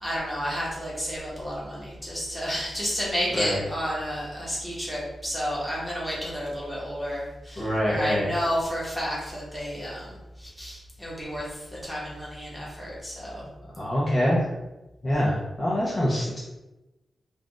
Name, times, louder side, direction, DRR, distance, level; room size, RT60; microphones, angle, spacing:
voice 1, 0.0-13.4, equal, 5° left, -6 dB, 1.0 m, -31 dB
voice 2, 3.3-3.6 7.6-8.3 13.8-14.5 15.0-16.4, equal, 30° left, -6 dB, 0.6 m, -25 dB
2.4 x 2.4 x 3.8 m, 1.0 s
wide cardioid pair, 130°, 0 cm